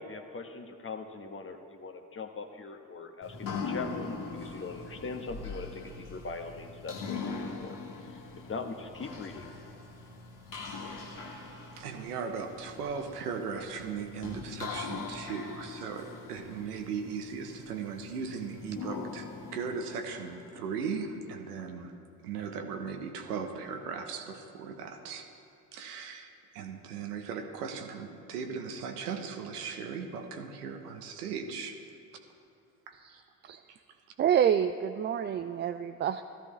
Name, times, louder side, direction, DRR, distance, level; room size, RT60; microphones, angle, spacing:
voice 1, 0.0-7.8 8.1-9.5, left 4 dB, 25° left, 6 dB, 1.2 m, -41 dB
sound 1, 3.2-21.0, left 4 dB, 45° left, 1.9 m, -42 dB
voice 2, 11.8-21.9 22.2-25.3 25.7-31.8 32.9-33.0, right 6 dB, 85° right, 5 dB, 1.0 m, -38 dB
voice 3, 33.0-33.6 34.2-36.2, right 9 dB, 25° right, 8 dB, 0.3 m, -28 dB
15.0 x 13.5 x 3.2 m, 2.4 s
hypercardioid pair, 50°, 45 cm